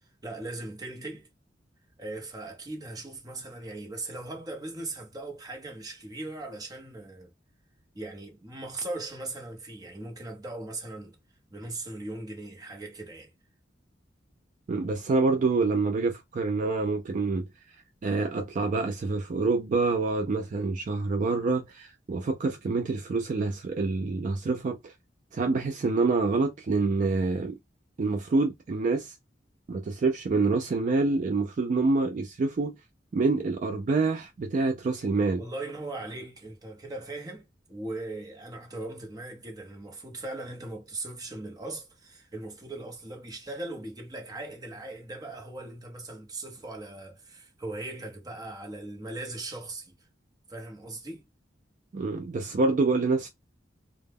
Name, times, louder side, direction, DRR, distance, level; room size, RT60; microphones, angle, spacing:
voice 1, 0.2-1.3 2.0-7.3 7.9-11.2 11.5-13.3 35.4-50.0 50.5-51.3, right 2 dB, 20° right, 0.7 m, -39 dB
voice 2, 14.7-17.5 18.0-24.9 25.3-27.6 28.0-29.1 29.7-32.7 33.1-35.4 51.9-53.3, right 3 dB, 45° right, 0.3 m, -26 dB
2.1 x 2.0 x 3.3 m
head